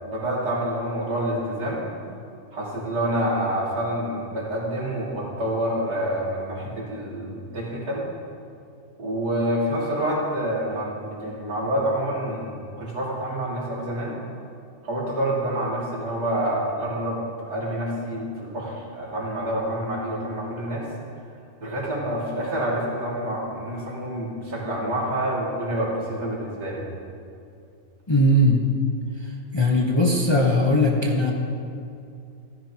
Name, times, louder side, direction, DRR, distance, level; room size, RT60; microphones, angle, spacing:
voice 1, 0.0-1.9 2.5-8.0 9.0-14.1 14.8-20.9 21.6-26.8, right 1 dB, 85° right, -5 dB, 3.0 m, -27 dB
voice 2, 28.1-28.7 29.2-31.3, left 1 dB, 20° left, -1 dB, 0.9 m, -20 dB
15.5 x 14.0 x 2.9 m, 2.6 s
omnidirectional pair, 1.6 m